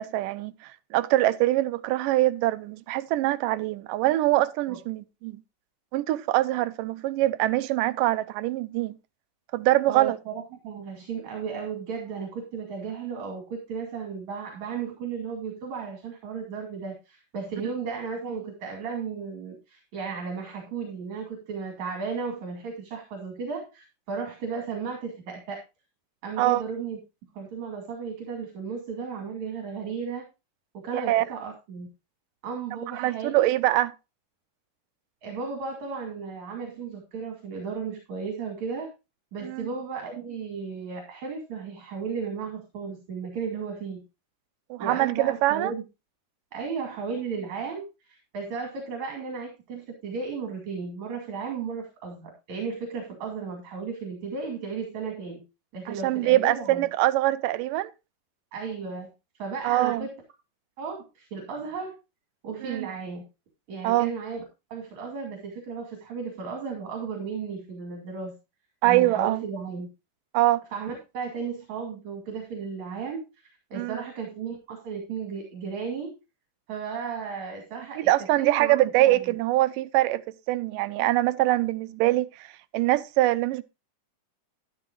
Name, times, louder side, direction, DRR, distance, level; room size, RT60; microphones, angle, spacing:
voice 1, 0.0-5.4 5.9-8.9 9.5-10.2 26.4-26.6 30.9-31.2 33.0-33.9 39.4-39.7 44.7-45.7 55.9-57.9 59.6-60.1 62.6-62.9 63.8-64.1 68.8-69.4 70.3-70.6 73.7-74.0 78.0-80.2 80.5-82.3 82.7-83.6, right 16 dB, 90° right, 2.3 m, -23 dB
voice 2, 9.9-25.6 26.2-27.0 27.3-30.3 30.7-31.9 32.4-33.5 35.2-38.9 39.3-44.0 44.8-45.8 46.5-55.4 55.7-56.8 58.5-59.1 59.4-60.1 60.8-62.0 62.4-63.2 63.7-64.4 64.7-68.3 68.8-69.9 70.7-76.2 76.7-78.1 78.4-79.3, right 5 dB, 60° right, 3.8 m, -34 dB
12.5 x 12.0 x 2.4 m
omnidirectional pair, 3.7 m